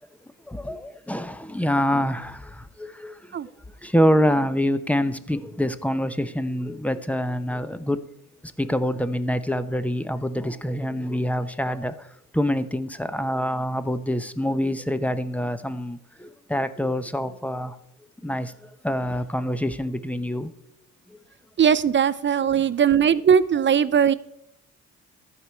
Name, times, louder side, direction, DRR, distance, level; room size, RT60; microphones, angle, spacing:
voice 1, 0.4-3.4 3.8-8.0 8.6-17.8 18.2-20.5 21.1-21.2 22.5-22.7, equal, 5° left, 0.9 m, -26 dB
voice 2, 21.6-24.1, right 8 dB, 40° right, 0.5 m, -19 dB
13.5 x 5.0 x 8.3 m
cardioid pair, 90°, 30 cm